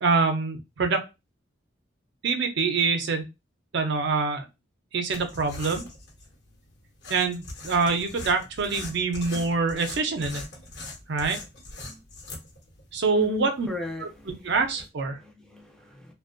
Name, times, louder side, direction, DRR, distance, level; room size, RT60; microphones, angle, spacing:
voice 1, 0.0-1.0 2.2-3.2 3.7-4.5 4.9-5.8 7.1-10.4 11.1-11.4 12.9-13.7 14.0-14.1 14.4-15.2, right 4 dB, 65° right, 0.5 m, -25 dB
sound 1, 5.1-14.9, left 2 dB, 60° left, 1.0 m, -42 dB
voice 2, 13.1-14.4 15.1-16.1, left 3 dB, 5° left, 0.5 m, -35 dB
2.5 x 2.2 x 2.4 m
head